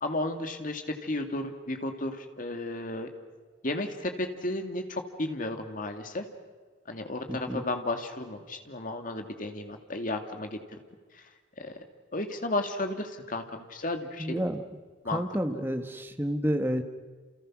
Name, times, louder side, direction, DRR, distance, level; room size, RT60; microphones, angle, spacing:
voice 1, 0.0-3.1 3.6-6.3 6.9-10.6 11.6-11.7 12.1-14.5 15.0-15.2 15.5-15.6, left 2 dB, 45° left, 5 dB, 2.4 m, -33 dB
voice 2, 7.3-7.6 14.2-14.6 15.1-16.8, equal, 10° right, 7 dB, 1.6 m, -30 dB
29.5 x 29.0 x 6.3 m, 1.4 s
head